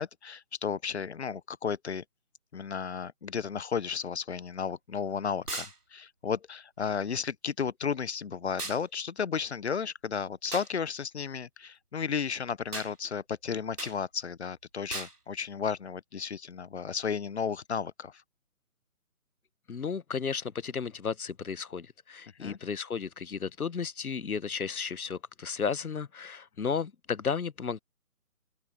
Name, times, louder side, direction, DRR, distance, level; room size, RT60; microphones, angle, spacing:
voice 1, 0.0-2.0 2.5-18.2 22.4-22.6, left 6 dB, 45° left, 0.9 m, -33 dB
sound 1, 5.5-5.8 8.6-8.8 10.5-10.7 12.7-12.9 13.8-14.0 14.9-15.2, right 3 dB, 85° right, 5.2 m, -37 dB
voice 2, 19.7-27.8, left 6 dB, 70° left, 1.2 m, -33 dB
open air
figure-of-eight pair, 150°, 45 cm